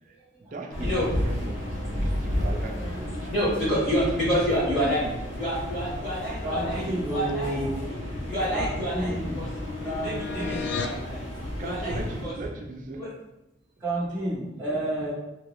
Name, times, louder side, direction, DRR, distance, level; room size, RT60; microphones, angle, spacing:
voice 1, 0.0-3.4 4.1-4.2 11.6-13.1 14.7-14.8, right 2 dB, 45° right, 2 dB, 0.4 m, -39 dB
sound 1, 0.7-12.2, left 1 dB, 90° left, 1.1 m, -32 dB
voice 2, 3.3-5.1 5.4-9.5 9.8-11.2 11.6-12.3 13.0-13.1, equal, 25° left, -14 dB, 1.4 m, -28 dB
voice 3, 6.4-7.8 8.5-9.4 9.8-10.6 13.8-15.1, right 1 dB, 10° right, -11 dB, 0.7 m, -31 dB
sound 2, 8.0-11.0, left 5 dB, 65° left, 0.3 m, -37 dB
2.9 x 2.7 x 3.0 m, 0.91 s
head